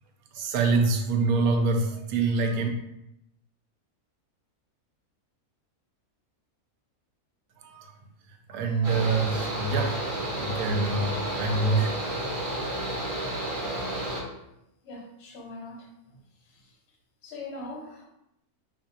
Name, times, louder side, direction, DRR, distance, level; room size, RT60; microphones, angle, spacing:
voice 1, 0.3-2.7 7.6-7.9 8.5-12.2, right 3 dB, 75° right, 4 dB, 1.0 m, -26 dB
Mechanical fan, 8.8-14.2, right 1 dB, 30° right, 0.7 m, -31 dB
voice 2, 14.8-15.9 16.4-16.7 17.2-18.1, left 2 dB, 55° left, 0 dB, 0.8 m, -41 dB
4.2 x 2.5 x 2.7 m, 0.83 s
omnidirectional pair, 1.6 m